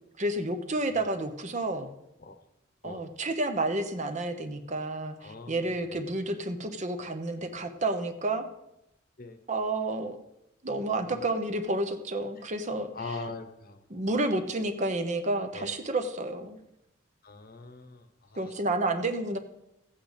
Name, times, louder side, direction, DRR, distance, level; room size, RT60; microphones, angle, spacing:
voice 1, 0.2-1.9 2.8-8.5 9.5-10.2 10.6-13.2 13.9-16.6 18.4-19.4, right 2 dB, 35° right, 8 dB, 1.0 m, -30 dB
voice 2, 5.2-6.0 9.2-9.4 11.1-11.2 12.4-12.5 12.9-13.8 15.5-15.7 17.2-18.5, left 3 dB, 45° left, 8 dB, 1.1 m, -42 dB
14.5 x 8.7 x 5.2 m, 0.87 s
head